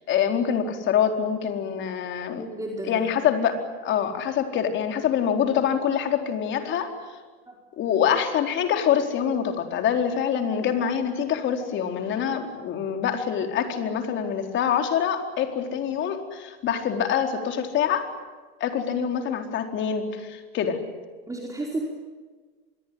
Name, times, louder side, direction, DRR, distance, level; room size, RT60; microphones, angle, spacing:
voice 1, 0.1-2.5 2.9-6.9 7.8-18.1 18.6-20.8, left 8 dB, 40° left, 5 dB, 4.3 m, -25 dB
voice 2, 2.3-3.0 7.5-7.6 21.3-21.8, right 2 dB, 10° right, -1 dB, 4.8 m, -32 dB
26.0 x 22.5 x 9.7 m, 1.4 s
supercardioid pair, 120°, 31 cm